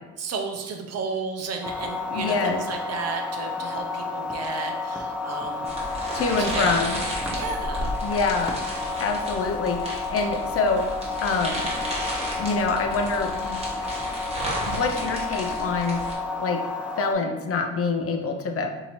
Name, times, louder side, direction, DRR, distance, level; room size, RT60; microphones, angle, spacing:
voice 1, 0.2-5.7 6.4-6.7 7.3-8.2, right 4 dB, 55° right, 3 dB, 0.6 m, -33 dB
sound 1, 1.6-17.1, left 4 dB, 5° right, 0.4 m, -31 dB
voice 2, 2.1-2.6 6.1-7.0 8.0-8.6 9.0-10.9 11.2-11.7 12.4-14.0 14.7-16.0 16.4-16.6 17.0-18.7, left 4 dB, 50° left, 4 dB, 0.5 m, -26 dB
sound 2, 5.6-16.1, right 1 dB, 20° right, 1.2 m, -33 dB
2.8 x 2.7 x 4.3 m, 1.2 s
cardioid pair, 90°, 30 cm